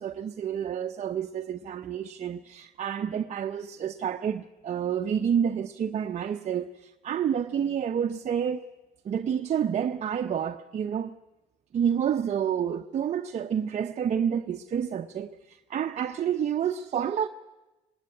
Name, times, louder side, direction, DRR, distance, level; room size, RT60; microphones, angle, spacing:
voice 1, 0.0-8.6 9.0-11.2 11.7-17.3, right 8 dB, 40° right, 0.8 m, -29 dB
19.0 x 19.0 x 9.8 m
cardioid pair, 110°, 17 cm